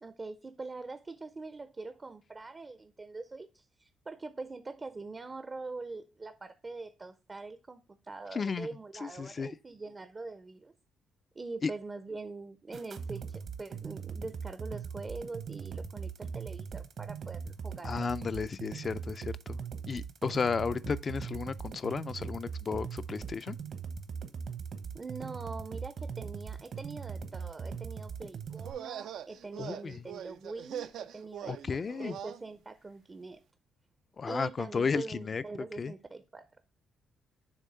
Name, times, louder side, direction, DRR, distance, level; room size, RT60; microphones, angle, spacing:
voice 1, 0.0-10.7 11.3-18.1 24.9-31.6 32.0-33.4 34.3-36.5, right 3 dB, 25° right, 0.5 m, -43 dB
voice 2, 8.3-8.7 9.0-9.5 11.6-11.7 17.8-19.6 19.9-23.6 29.6-30.1 31.5-32.1 34.2-35.4 35.8-35.9, left 5 dB, 40° left, 0.4 m, -33 dB
sound 1, 12.7-28.7, right 6 dB, 55° right, 0.9 m, -40 dB
sound 2, 28.6-32.4, right 10 dB, 75° right, 0.4 m, -42 dB
7.3 x 3.1 x 5.6 m
cardioid pair, 90°, 0 cm